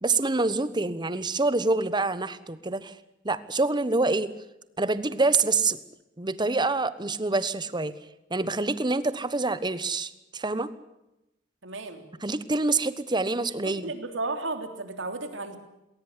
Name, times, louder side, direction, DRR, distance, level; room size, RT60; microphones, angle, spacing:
voice 1, 0.0-2.9 3.2-4.3 4.8-5.8 6.2-7.9 8.3-10.7 12.2-13.9, right 3 dB, 20° right, 15 dB, 1.1 m, -26 dB
voice 2, 11.6-12.0 13.6-15.6, right 3 dB, 65° right, 7 dB, 3.3 m, -33 dB
20.0 x 19.0 x 9.8 m, 0.91 s
head